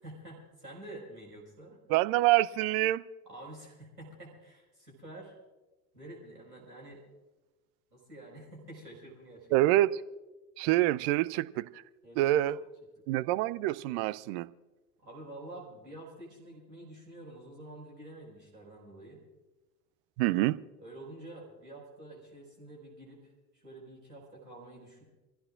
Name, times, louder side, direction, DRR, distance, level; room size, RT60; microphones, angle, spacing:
voice 1, 0.0-1.8 3.2-5.3 5.9-7.0 7.9-9.5 12.0-12.5 13.1-13.3 15.0-19.2 20.8-25.0, right 1 dB, 85° right, -2 dB, 5.2 m, -48 dB
voice 2, 1.9-3.0 9.5-10.0 10.6-11.8 12.2-12.6 13.1-14.5 20.2-20.6, right 16 dB, 40° right, 18 dB, 0.5 m, -26 dB
26.5 x 16.0 x 2.5 m, 1.1 s
figure-of-eight pair, 75°, 48 cm